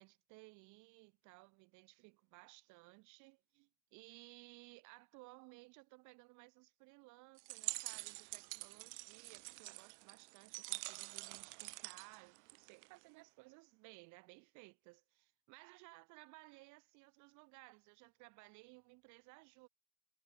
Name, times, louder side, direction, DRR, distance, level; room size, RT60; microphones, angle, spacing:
voice 1, 0.0-19.7, right 26 dB, 60° right, 4.3 m, -60 dB
sound 1, 7.4-13.0, right 29 dB, 85° right, 2.2 m, -47 dB
cardioid pair, 170°, 34 cm